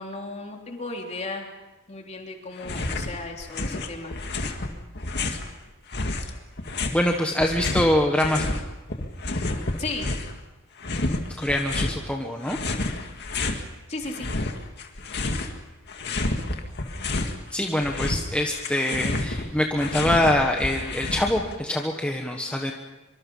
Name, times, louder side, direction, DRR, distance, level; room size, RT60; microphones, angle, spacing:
voice 1, 0.0-1.5 1.9-4.1 9.8-10.1 13.9-14.3, left 2 dB, 35° left, 1 dB, 3.5 m, -35 dB
sound 1, 2.6-3.1 3.4-5.5 5.9-8.6 8.9-10.4 10.8-12.0 12.5-13.6 14.0-15.6 15.9-17.4 17.7-21.6, left 2 dB, 55° left, 2.0 m, -29 dB
voice 2, 6.9-8.5 11.4-12.6 17.5-22.7, left 1 dB, 5° left, 1 dB, 1.4 m, -24 dB
24.5 x 24.5 x 5.6 m, 1.0 s
head